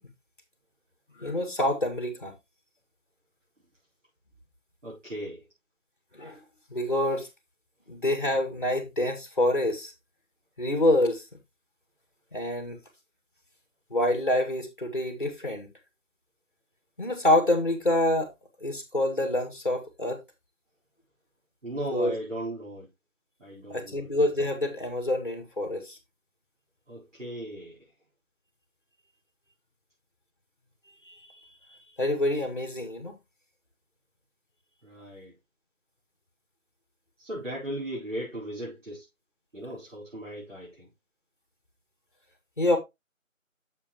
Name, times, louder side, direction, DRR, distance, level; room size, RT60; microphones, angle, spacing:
voice 1, 1.2-2.4 6.1-6.4 6.7-7.3 7.9-9.9 10.6-11.2 12.3-12.8 13.9-15.7 17.0-18.3 18.6-20.2 21.9-22.1 23.7-26.0 31.0-31.2 32.0-33.2 42.6-42.8, left 1 dB, 35° left, 2.1 m, -26 dB
voice 2, 4.8-5.4 21.6-22.9 23.4-24.1 26.9-27.8 34.8-35.3 37.2-39.0 39.5-40.9, equal, 60° right, 4.5 m, -37 dB
8.3 x 7.0 x 3.0 m
figure-of-eight pair, 175°, 41 cm